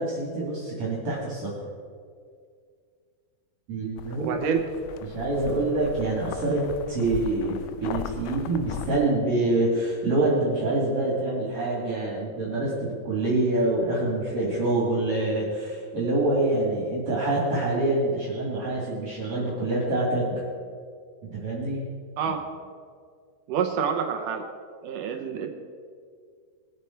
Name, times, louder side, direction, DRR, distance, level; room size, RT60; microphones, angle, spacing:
voice 1, 0.0-1.5 3.7-4.4 5.0-20.4 21.2-21.8, right 2 dB, 50° right, -5 dB, 3.4 m, -26 dB
sound 1, 4.0-9.0, left 9 dB, 80° left, 1.9 m, -38 dB
voice 2, 4.2-4.6 22.2-22.4 23.5-24.5 24.8-25.5, right 7 dB, 75° right, 5 dB, 2.1 m, -27 dB
21.5 x 8.3 x 4.6 m, 2.1 s
omnidirectional pair, 4.4 m